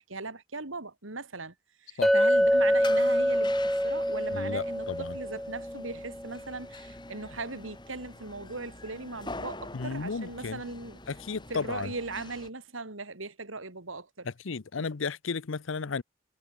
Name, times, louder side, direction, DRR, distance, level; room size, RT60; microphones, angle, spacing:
voice 1, 0.0-1.5 1.8-11.0 11.5-14.3 14.8-14.9, right 3 dB, 85° right, 2.9 m, -39 dB
Chink clink, 2.0-6.2, equal, ahead, 0.8 m, -25 dB
sound 1, 2.3-12.5, left 2 dB, 25° left, 3.4 m, -45 dB
voice 2, 4.3-5.2 9.7-10.6 11.1-11.9 14.2-16.0, left 4 dB, 80° left, 0.7 m, -33 dB
head